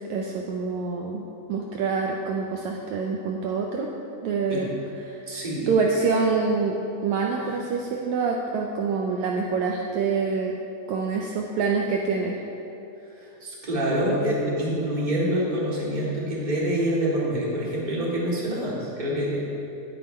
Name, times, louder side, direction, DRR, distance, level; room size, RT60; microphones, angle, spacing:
voice 1, 0.1-3.9 4.2-4.7 5.1-5.2 5.7-6.8 7.0-10.5 10.9-12.4, right 4 dB, 75° right, 0 dB, 1.8 m, -26 dB
voice 2, 5.3-5.7 13.1-19.4, equal, 15° right, -6 dB, 1.9 m, -26 dB
10.5 x 10.0 x 4.4 m, 2.8 s
omnidirectional pair, 3.7 m